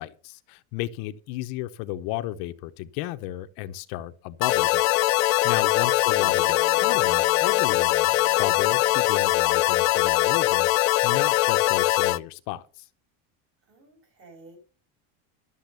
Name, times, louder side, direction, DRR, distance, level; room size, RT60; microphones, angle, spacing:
voice 1, 0.0-12.9, left 15 dB, 60° left, 0.9 m, -34 dB
sound 1, 4.4-12.2, left 19 dB, 90° left, 0.7 m, -21 dB
voice 2, 5.6-6.0 13.7-14.6, right 2 dB, 35° right, 6.4 m, -52 dB
Bass guitar, 6.2-10.4, right 2 dB, 80° right, 5.9 m, -49 dB
12.0 x 7.2 x 6.9 m
cardioid pair, 155°, 39 cm